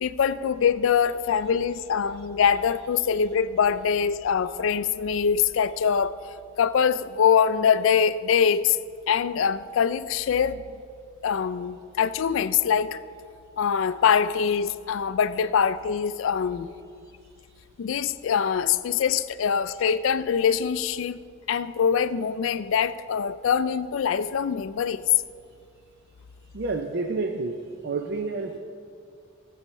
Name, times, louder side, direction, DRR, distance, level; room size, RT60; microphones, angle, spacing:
voice 1, 0.0-6.2 6.6-8.8 9.1-10.6 11.2-13.0 13.6-16.7 17.8-21.2 21.5-25.0, left 7 dB, 65° left, 14 dB, 0.3 m, -23 dB
voice 2, 26.5-28.6, right 3 dB, 50° right, 4 dB, 0.5 m, -29 dB
17.0 x 7.8 x 3.1 m, 2.3 s
head